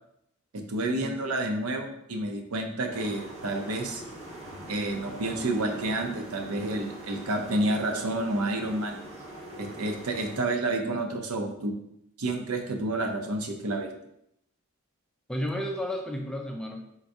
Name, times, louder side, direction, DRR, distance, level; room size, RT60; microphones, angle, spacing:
voice 1, 0.5-4.0 4.7-9.0 9.6-11.7 12.2-13.9, right 2 dB, 80° right, 4 dB, 0.7 m, -29 dB
sound 1, 2.9-10.4, right 1 dB, 30° right, 1.1 m, -43 dB
voice 2, 15.3-16.8, equal, 5° left, 2 dB, 0.4 m, -32 dB
3.8 x 2.6 x 4.6 m, 0.77 s
head